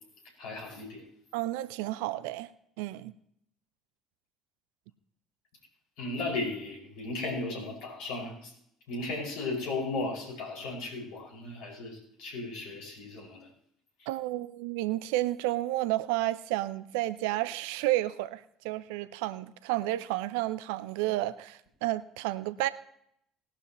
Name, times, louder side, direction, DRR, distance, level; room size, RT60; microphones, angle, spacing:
voice 1, 0.4-1.1 6.0-8.5 8.9-13.5 14.0-14.1, left 2 dB, 60° left, 0 dB, 5.4 m, -36 dB
voice 2, 1.3-2.5 2.8-3.1 14.1-22.7, right 16 dB, 65° right, 16 dB, 0.5 m, -31 dB
19.5 x 11.5 x 3.0 m, 0.73 s
figure-of-eight pair, 55°, 0 cm